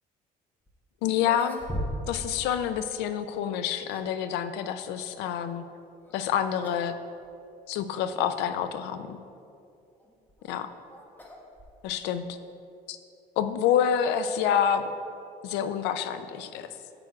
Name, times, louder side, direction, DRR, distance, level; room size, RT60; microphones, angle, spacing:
sound 1, 0.7-0.8 1.2-2.3 2.5-2.6 3.5-4.2 6.0-6.3 6.6-6.9 7.2-7.3 8.1-8.2 10.0-12.1, equal, 10° left, 0.9 m, -39 dB
voice 1, 1.0-1.6 2.1-5.6 6.1-6.9 7.7-9.2 10.5-10.7 11.8-12.3 12.9-13.0 13.4-14.8 15.4-16.7, left 9 dB, 90° left, 11 dB, 0.5 m, -27 dB
9.6 x 7.7 x 2.4 m, 2.6 s
cardioid pair, 110°, 17 cm